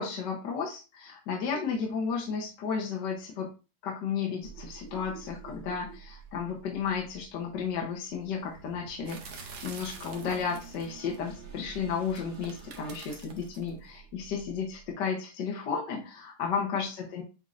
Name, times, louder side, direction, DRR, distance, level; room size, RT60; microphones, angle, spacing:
voice 1, 0.0-3.5 3.8-17.2, left 6 dB, 70° left, -1 dB, 1.5 m, -33 dB
sound 1, 4.4-14.9, right 5 dB, 85° right, 2.6 m, -49 dB
sound 2, 9.0-11.1 12.0-13.7, right 5 dB, 65° right, 1.3 m, -47 dB
7.4 x 2.6 x 2.5 m, 0.31 s
omnidirectional pair, 2.1 m